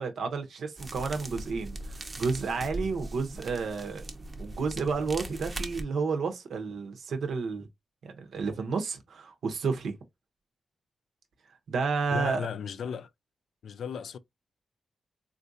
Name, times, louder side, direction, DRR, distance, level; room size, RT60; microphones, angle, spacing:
voice 1, 0.0-4.0 4.4-7.7 8.0-9.9 11.7-12.5, right 4 dB, 75° right, 0.8 m, -31 dB
sound 1, 0.8-5.8, right 1 dB, 30° right, 0.6 m, -39 dB
voice 2, 12.1-13.1 13.6-14.2, left 6 dB, 75° left, 0.3 m, -35 dB
3.7 x 2.5 x 2.6 m
wide cardioid pair, 120°, 0 cm